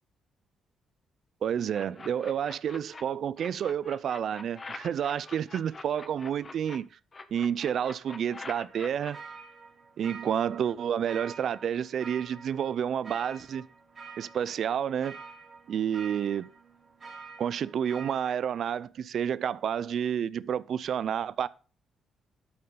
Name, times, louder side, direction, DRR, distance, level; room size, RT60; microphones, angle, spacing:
voice 1, 1.4-6.9 7.3-9.2 10.0-13.6 14.2-15.2 15.7-16.5 17.4-21.5, right 8 dB, 65° right, 0.5 m, -30 dB
sound 1, 1.7-3.0 3.4-6.8 7.1-9.1, left 3 dB, 30° left, 1.4 m, -44 dB
sound 2, 8.5-18.4, right 5 dB, 45° right, 3.4 m, -48 dB
12.0 x 8.8 x 3.9 m
cardioid pair, 90°, 0 cm